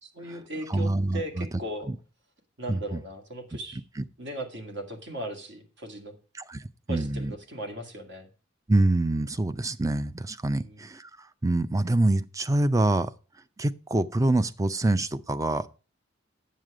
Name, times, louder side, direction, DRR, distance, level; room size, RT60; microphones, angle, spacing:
voice 1, 0.0-1.9 2.6-3.8 4.2-6.1 6.9-8.3 10.5-10.8, right 1 dB, 60° right, 2.1 m, -38 dB
voice 2, 0.7-1.5 1.9-2.0 2.7-3.0 4.0-4.1 6.3-7.3 8.7-13.1 13.6-15.7, right 2 dB, 15° right, 0.5 m, -26 dB
9.4 x 7.4 x 4.9 m
head